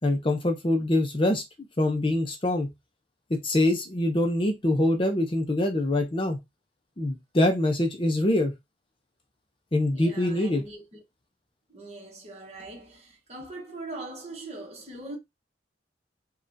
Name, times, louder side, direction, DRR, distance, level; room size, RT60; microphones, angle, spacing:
voice 1, 0.0-1.4 1.8-2.7 3.3-6.4 7.0-8.5 9.7-10.6, left 1 dB, 30° left, 0.6 m, -24 dB
voice 2, 9.9-11.0 11.7-15.2, right 2 dB, 35° right, 1.3 m, -41 dB
5.2 x 2.4 x 2.6 m
head